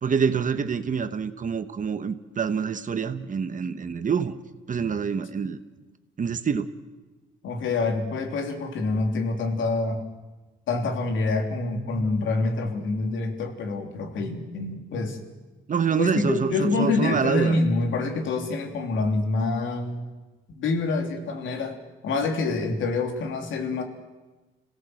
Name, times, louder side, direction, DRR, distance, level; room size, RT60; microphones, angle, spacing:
voice 1, 0.0-4.3 4.7-5.6 6.2-6.7 15.7-17.6, right 6 dB, 40° right, 10 dB, 1.3 m, -26 dB
voice 2, 7.4-10.0 10.7-15.2 16.0-20.1 20.6-21.8 22.0-23.8, left 3 dB, 75° left, 3 dB, 3.3 m, -26 dB
27.0 x 17.5 x 7.9 m, 1.2 s
cardioid pair, 90°, 20 cm